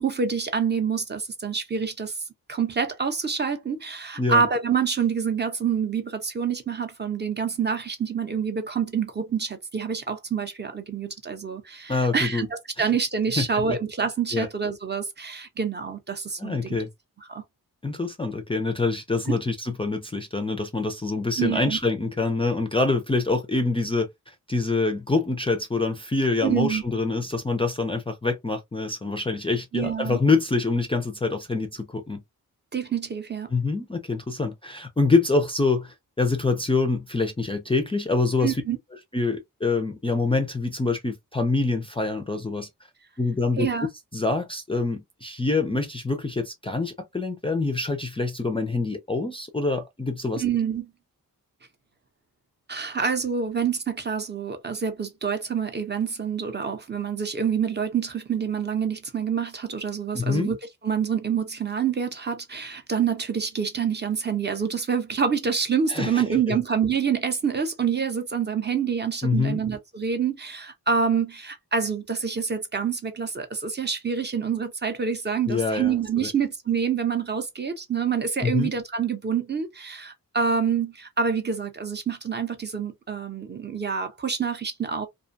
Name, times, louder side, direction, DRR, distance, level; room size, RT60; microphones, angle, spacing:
voice 1, 0.0-2.2 2.5-16.8 17.3-17.4 19.3-19.4 21.4-21.8 26.4-26.8 29.7-30.2 32.7-33.5 38.4-38.8 43.6-43.9 50.4-50.9 52.7-60.6 60.8-85.1, right 6 dB, 30° right, 0.6 m, -27 dB
voice 2, 11.9-12.4 12.8-12.9 13.4-13.8 14.3-14.5 16.4-16.9 17.8-24.1 24.5-32.2 33.5-38.6 39.1-42.7 43.2-43.7 44.1-50.4 60.1-60.5 65.9-66.6 69.2-69.6 75.5-76.3 78.4-78.7, left 3 dB, 15° left, 0.4 m, -25 dB
2.5 x 2.2 x 2.6 m
wide cardioid pair, 105°, 35 cm